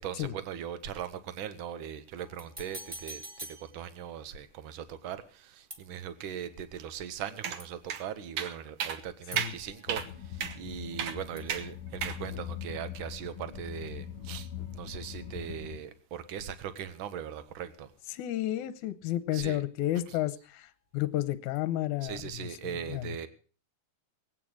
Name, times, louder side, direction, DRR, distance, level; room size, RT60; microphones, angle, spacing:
voice 1, 0.0-3.2 3.6-17.9 19.3-19.6 22.0-23.3, right 9 dB, 80° right, 1.1 m, -40 dB
sound 1, 2.2-4.3 5.7-6.4 7.6-8.1 9.3-11.1 11.4-12.5 16.8-17.5 19.9-20.6 21.5-21.6, right 1 dB, 15° right, 1.3 m, -49 dB
sound 2, 7.4-7.6 7.9-8.0 8.4-8.5 8.8-9.0 9.4-9.5 9.9-10.1 10.4-10.5 11.0-11.2 11.5-11.6 12.0-12.2, right 8 dB, 60° right, 1.7 m, -32 dB
sound 3, 9.9-15.8, left 10 dB, 60° left, 1.6 m, -42 dB
voice 2, 18.1-20.7 20.9-22.5 22.9-23.2, left 14 dB, 75° left, 2.2 m, -31 dB
19.5 x 8.8 x 6.3 m
omnidirectional pair, 3.6 m